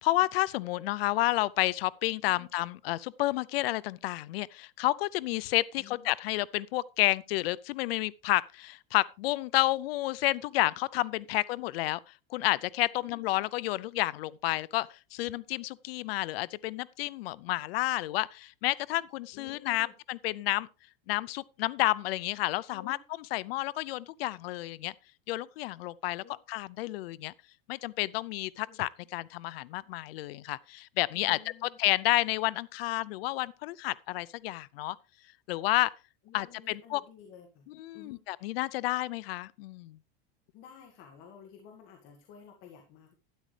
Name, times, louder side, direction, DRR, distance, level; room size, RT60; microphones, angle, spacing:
voice 1, 0.0-12.0 12.3-20.7 21.1-23.0 23.3-24.9 25.3-27.3 27.7-35.0 35.5-35.9 36.3-37.0 37.8-40.0, left 18 dB, 85° left, 0.5 m, -30 dB
voice 2, 5.8-6.1 13.0-13.1 19.3-19.9 22.7-22.9 26.2-26.4 28.7-28.8 31.1-31.8 36.2-37.7 37.9-38.2 40.5-43.1, left 7 dB, 45° left, 1.9 m, -52 dB
12.5 x 10.0 x 3.3 m
supercardioid pair, 155°, 29 cm